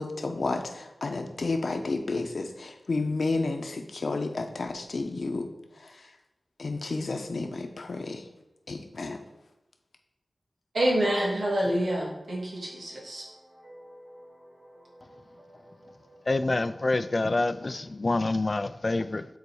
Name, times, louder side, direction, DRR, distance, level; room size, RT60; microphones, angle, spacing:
voice 1, 0.0-5.5 5.8-6.1 6.6-8.3 8.7-9.2, left 3 dB, 75° left, 0.9 m, -31 dB
voice 2, 10.7-13.2, right 1 dB, 85° right, 2.6 m, -27 dB
voice 3, 16.3-19.3, left 2 dB, 50° left, 0.4 m, -27 dB
9.5 x 4.1 x 4.7 m
wide cardioid pair, 70°, 0 cm